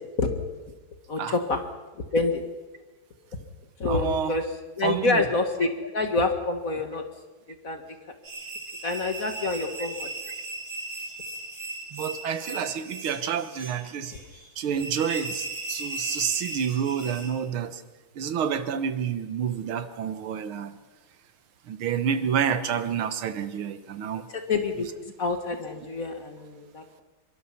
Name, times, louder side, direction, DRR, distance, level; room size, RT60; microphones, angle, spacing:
voice 1, 1.1-1.6 2.1-2.5 3.8-4.4 4.8-7.0 7.6-7.8 8.8-10.1 24.3-24.9 25.2-27.0, left 3 dB, 45° left, 6 dB, 2.0 m, -27 dB
voice 2, 3.9-4.3 4.8-5.2 11.9-14.1 14.6-17.8 18.2-20.8 21.7-24.2, right 8 dB, 85° right, 11 dB, 2.1 m, -29 dB
sound 1, 8.2-17.3, right 2 dB, 70° right, 7.2 m, -37 dB
23.0 x 22.5 x 5.9 m, 1.2 s
omnidirectional pair, 2.2 m